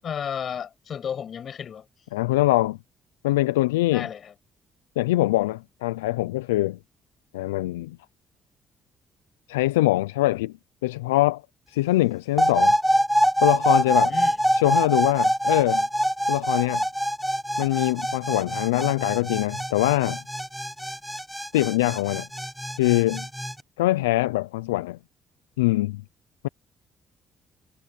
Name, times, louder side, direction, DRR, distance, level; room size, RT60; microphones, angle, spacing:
voice 1, 0.0-1.9 3.9-4.3 13.8-14.4, left 8 dB, 55° left, 6.5 m, -33 dB
voice 2, 2.1-2.8 3.2-4.1 5.0-6.8 7.3-8.0 9.5-10.5 10.8-11.4 11.7-12.8 13.4-14.1 14.5-15.9 16.3-16.8 17.6-20.2 21.5-22.3 22.8-23.3 23.8-25.0 25.6-26.0, left 18 dB, 90° left, 0.6 m, -23 dB
sound 1, 12.4-23.5, equal, 5° right, 1.0 m, -24 dB
hypercardioid pair, 50°, 0 cm